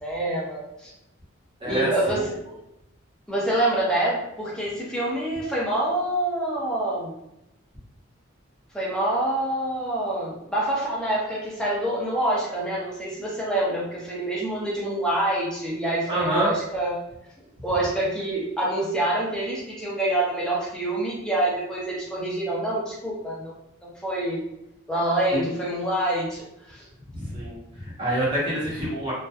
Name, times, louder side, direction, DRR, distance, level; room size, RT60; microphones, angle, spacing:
voice 1, 0.0-0.9 1.7-2.4 3.3-7.1 8.7-17.0 17.6-23.5 23.8-24.4 24.9-26.9, right 1 dB, 5° left, -7 dB, 0.6 m, -26 dB
voice 2, 1.6-2.3 16.1-16.5 25.3-25.5 27.1-29.1, right 1 dB, 25° right, -8 dB, 0.8 m, -27 dB
2.8 x 2.2 x 2.2 m, 0.83 s
head